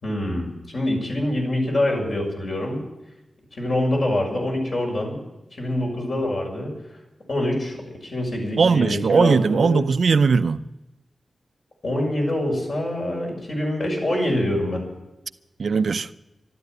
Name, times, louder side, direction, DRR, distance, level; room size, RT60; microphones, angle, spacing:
voice 1, 0.0-2.8 3.5-5.2 5.5-6.7 7.3-9.9 11.8-14.8, left 1 dB, 60° left, 6.3 m, -25 dB
voice 2, 8.6-10.6 15.6-16.1, right 5 dB, 70° right, 0.6 m, -19 dB
12.5 x 12.5 x 9.3 m
wide cardioid pair, 80°, 0 cm